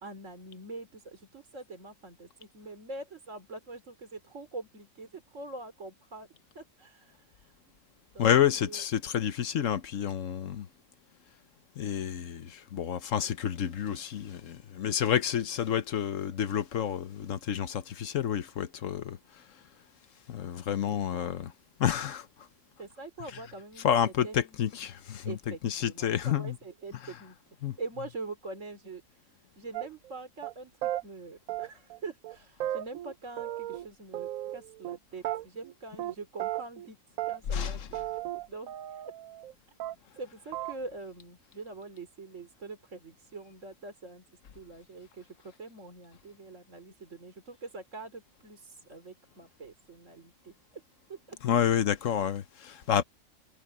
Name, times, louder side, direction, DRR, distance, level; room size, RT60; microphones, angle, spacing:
voice 1, 0.0-6.3 6.6-7.6 8.1-8.8 20.8-21.4 22.8-24.6 25.2-37.0 37.3-38.0 38.5-39.0 40.2-44.2 44.5-50.8 51.1-51.7, right 3 dB, 65° right, 3.9 m, -44 dB
voice 2, 8.2-10.7 11.8-19.4 20.3-21.5 21.8-22.3 23.2-23.4 23.8-26.6 26.9-27.2 27.6-27.8 37.5-38.0 51.4-53.0, left 9 dB, 70° left, 1.2 m, -29 dB
sound 1, 29.7-30.1 30.4-30.5 30.8-31.0 31.5-32.0 32.2-32.4 32.6-33.9 34.1-35.0 35.2-35.7 36.0-36.1 36.4-36.9 37.2-37.7 37.9-39.5 39.8-40.2 40.5-40.8, right 13 dB, 85° right, 1.1 m, -35 dB
omnidirectional pair, 1.4 m